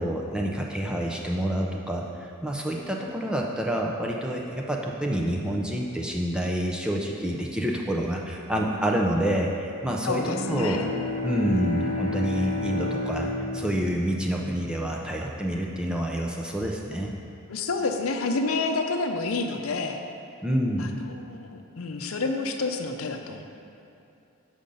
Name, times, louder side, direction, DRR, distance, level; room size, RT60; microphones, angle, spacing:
voice 1, 0.0-10.2 10.5-10.8 11.2-17.1 20.4-21.0, equal, 5° right, -1 dB, 0.5 m, -28 dB
voice 2, 10.0-10.9 17.5-20.0 20.8-23.4, left 3 dB, 80° left, 4 dB, 0.6 m, -29 dB
Bowed string instrument, 10.1-15.4, left 2 dB, 35° left, 0.9 m, -32 dB
7.1 x 5.1 x 5.3 m, 2.7 s
head